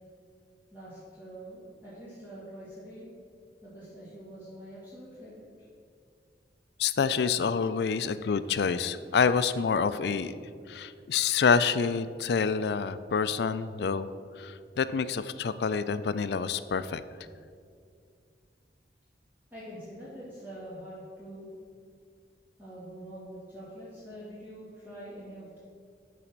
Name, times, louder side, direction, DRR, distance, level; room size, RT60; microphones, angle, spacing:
voice 1, 0.7-3.1 3.6-5.5 19.5-21.5 22.6-25.6, right 1 dB, 10° right, -11 dB, 2.2 m, -45 dB
voice 2, 6.8-10.3 10.7-14.1 14.4-17.0, left 5 dB, 65° left, 14 dB, 0.4 m, -27 dB
12.0 x 4.2 x 5.9 m, 2.3 s
head